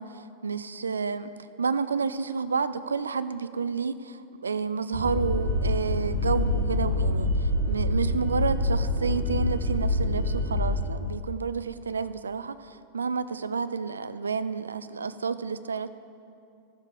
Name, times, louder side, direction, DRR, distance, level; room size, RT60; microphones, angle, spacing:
voice 1, 0.0-15.9, right 5 dB, 75° right, 13 dB, 0.4 m, -30 dB
sound 1, 4.9-10.8, left 1 dB, 80° left, 2.1 m, -26 dB
13.0 x 6.9 x 4.8 m, 2.6 s
figure-of-eight pair, 90°, 0 cm